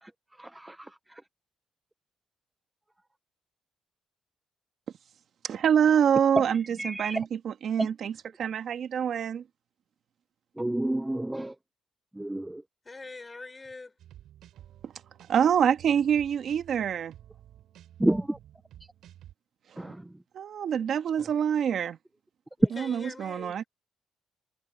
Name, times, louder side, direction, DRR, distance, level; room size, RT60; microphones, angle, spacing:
voice 1, 0.4-1.2 6.5-7.3 7.8-7.9 10.6-11.6 12.1-12.6 18.0-18.4 19.8-20.1, right 1 dB, 10° right, 0.6 m, -31 dB
voice 2, 5.4-8.1 8.4-9.4 14.8-14.9 15.3-17.1 19.7-19.9 20.3-22.0 22.7-23.6, right 8 dB, 65° right, 1.4 m, -26 dB
voice 3, 12.8-14.0 22.6-23.6, left 3 dB, 25° left, 6.1 m, -43 dB
sound 1, 14.0-19.3, right 12 dB, 80° right, 7.7 m, -52 dB
cardioid pair, 90°, 0 cm